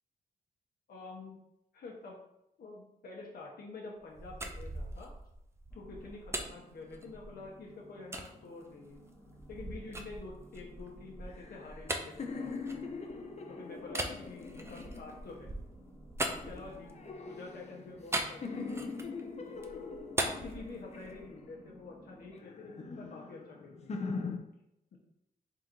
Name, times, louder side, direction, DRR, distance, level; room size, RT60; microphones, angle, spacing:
voice 1, 0.9-1.4 1.7-2.2 2.6-5.1 5.7-9.0 9.5-12.6 13.5-15.5 16.3-18.9 20.2-24.0 24.9-25.0, left 3 dB, 80° left, -2 dB, 0.9 m, -48 dB
sound 1, 4.0-7.5 8.1-8.3 8.9-13.3 13.9-17.1 18.1-19.2 19.5-21.3, right 1 dB, 15° right, 0.5 m, -40 dB
sound 2, 5.7-22.3, equal, 15° left, 0.9 m, -58 dB
sound 3, 11.3-15.6 16.2-18.1 18.4-21.8 22.3-24.4, left 4 dB, 45° left, 0.6 m, -42 dB
3.8 x 2.5 x 4.4 m, 0.81 s
cardioid pair, 95°, 16 cm